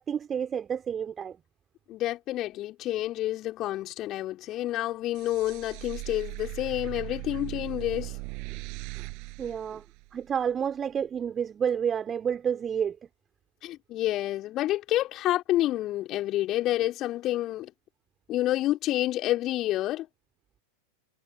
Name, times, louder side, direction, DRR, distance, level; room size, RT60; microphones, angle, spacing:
voice 1, 0.0-1.4 9.4-9.8 10.1-13.0, right 8 dB, 20° right, 3.9 m, -29 dB
voice 2, 1.9-8.2 13.6-17.7 18.3-20.1, left 15 dB, 35° left, 4.3 m, -29 dB
sound 1, 5.1-10.5, right 31 dB, 45° right, 6.1 m, -39 dB
figure-of-eight pair, 90°, 0 cm